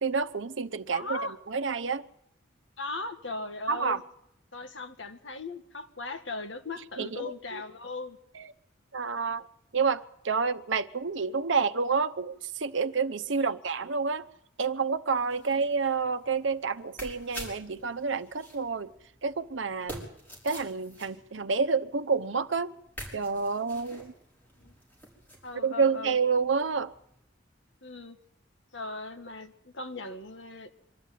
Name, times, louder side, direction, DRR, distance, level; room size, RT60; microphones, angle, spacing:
voice 1, 0.0-1.2 1.5-2.1 3.7-4.0 7.0-7.6 8.3-8.5 8.9-9.5 9.7-14.3 14.6-18.9 19.2-20.1 20.4-22.7 23.1-24.1 25.6-26.9, right 5 dB, 75° right, 0.9 m, -29 dB
voice 2, 0.9-1.3 2.8-4.0 4.5-8.2 13.4-13.6 15.5-15.6 24.6-24.7 25.4-26.2 27.8-28.2 28.7-30.7, left 3 dB, 70° left, 1.8 m, -38 dB
sound 1, 15.1-25.5 25.9-27.2, right 1 dB, 10° left, 5.6 m, -48 dB
24.0 x 12.5 x 9.3 m
head